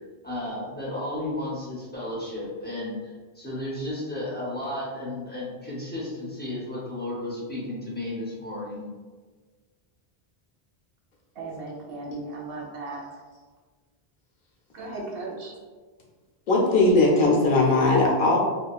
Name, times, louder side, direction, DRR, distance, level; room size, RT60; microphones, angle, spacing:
voice 1, 0.2-8.9, left 1 dB, 15° left, -6 dB, 0.5 m, -33 dB
voice 2, 11.4-13.2 14.7-15.6, right 2 dB, 70° right, -1 dB, 0.8 m, -36 dB
voice 3, 16.5-18.4, left 2 dB, 60° left, -2 dB, 0.7 m, -19 dB
2.8 x 2.3 x 2.3 m, 1.4 s
omnidirectional pair, 1.0 m